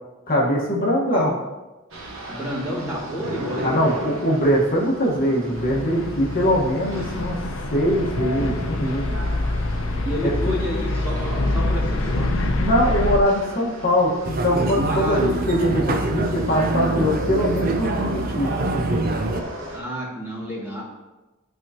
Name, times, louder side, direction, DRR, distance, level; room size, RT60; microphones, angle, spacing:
voice 1, 0.3-1.3 3.6-7.3 7.7-9.2 10.2-10.3 12.6-18.5, equal, 45° left, -3 dB, 1.3 m, -22 dB
sound 1, 1.9-19.8, right 1 dB, 80° right, 1.3 m, -36 dB
voice 2, 2.3-4.0 10.0-12.5 14.9-15.4 19.7-20.8, equal, 10° right, -7 dB, 2.1 m, -30 dB
sound 2, 5.6-13.2, left 2 dB, 70° left, 0.7 m, -25 dB
sound 3, 14.2-19.4, right 2 dB, 45° right, 0.5 m, -25 dB
12.0 x 4.5 x 2.9 m, 1.1 s
head